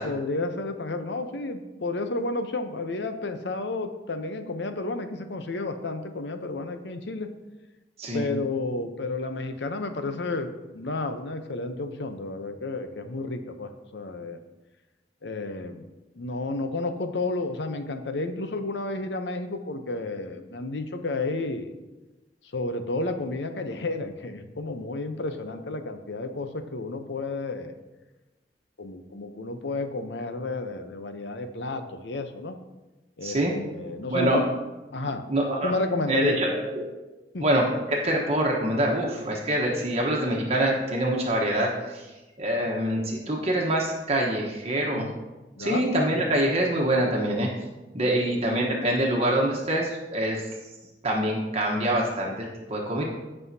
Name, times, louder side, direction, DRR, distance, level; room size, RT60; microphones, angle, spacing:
voice 1, 0.0-7.3 8.1-10.5 10.7-14.4 15.2-15.9 16.1-21.7 22.5-27.7 28.8-32.6 33.2-34.5 34.9-35.2 35.6-36.4 37.3-37.4 42.5-42.7 44.9-45.1 45.6-45.8 48.1-48.3, left 2 dB, 80° left, 7 dB, 0.8 m, -31 dB
voice 2, 33.2-33.5 34.1-34.4 35.3-35.7 36.1-36.9 37.4-42.1 42.4-45.1 45.6-47.5 47.9-50.4 51.0-53.0, right 1 dB, 35° right, -2 dB, 1.2 m, -25 dB
15.5 x 5.6 x 2.8 m, 1.1 s
head